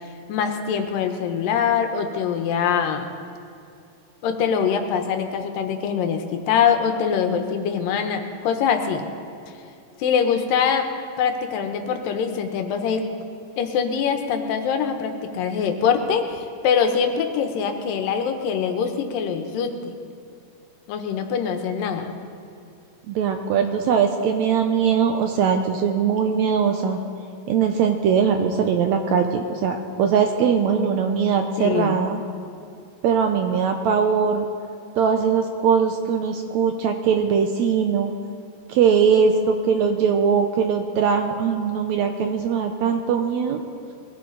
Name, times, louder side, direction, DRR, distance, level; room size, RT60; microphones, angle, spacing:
voice 1, 0.3-3.1 4.2-9.1 10.0-10.9 11.2-13.0 13.6-19.7 20.9-22.1 31.6-32.0, left 7 dB, 90° left, 6 dB, 2.8 m, -23 dB
voice 2, 23.1-27.0 27.5-32.2 33.0-34.5 35.0-38.1 38.7-43.6, right 6 dB, 75° right, 5 dB, 1.7 m, -21 dB
21.5 x 16.0 x 3.9 m, 2.5 s
omnidirectional pair, 3.9 m